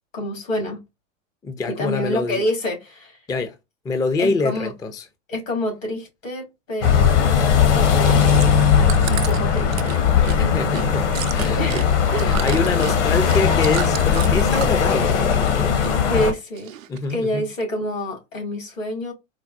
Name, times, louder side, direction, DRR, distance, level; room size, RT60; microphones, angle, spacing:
voice 1, 0.1-0.8 1.7-3.2 4.2-4.7 5.3-10.8 11.5-12.4 16.1-16.8 17.1-19.1, left 1 dB, 80° left, 2.4 m, -28 dB
voice 2, 1.4-2.4 3.3-3.6 3.8-5.1 10.4-11.8 12.2-15.8 16.9-17.5, left 3 dB, 10° left, 0.4 m, -25 dB
sound 1, 6.8-16.3, left 7 dB, 65° left, 1.2 m, -18 dB
Chewing mastication, 7.8-14.9 15.2-15.9 16.2-17.1 17.6-17.7, right 11 dB, 85° right, 0.6 m, -33 dB
4.5 x 2.2 x 2.6 m
hypercardioid pair, 100°, 39 cm